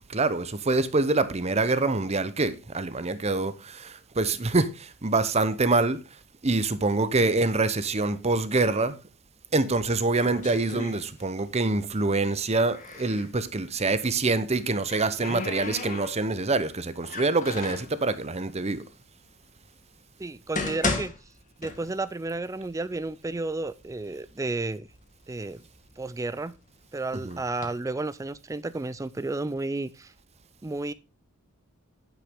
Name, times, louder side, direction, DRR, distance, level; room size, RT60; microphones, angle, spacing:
voice 1, 0.1-6.0 6.4-9.0 9.5-18.8 27.2-27.4, right 3 dB, 30° right, 0.8 m, -25 dB
sound 1, 9.7-11.6 11.9-13.3 14.4-16.5 17.0-17.9 18.7-18.8 19.5-19.6 20.2-22.2 22.5-22.6 23.3-23.4 23.8-24.5 25.0-26.7 27.3-27.7, left 3 dB, 35° left, 1.6 m, -35 dB
voice 2, 20.2-21.1 21.6-24.9 25.3-25.7 26.0-26.6 26.9-30.1 30.6-30.9, right 2 dB, 15° right, 0.4 m, -32 dB
9.1 x 8.3 x 3.6 m
head